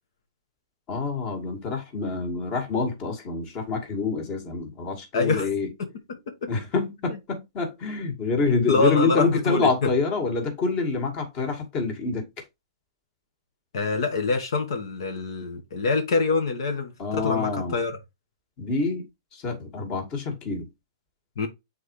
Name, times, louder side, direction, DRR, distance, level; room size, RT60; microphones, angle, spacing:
voice 1, 0.9-5.7 6.5-12.3 17.0-17.8 18.6-19.1 19.3-20.7, left 4 dB, 35° left, 2.2 m, -27 dB
voice 2, 5.1-5.5 5.8-6.5 8.7-9.7 13.7-17.9 21.4-21.5, left 3 dB, 70° left, 1.5 m, -25 dB
7.9 x 4.3 x 3.2 m
hypercardioid pair, 135°, 3 cm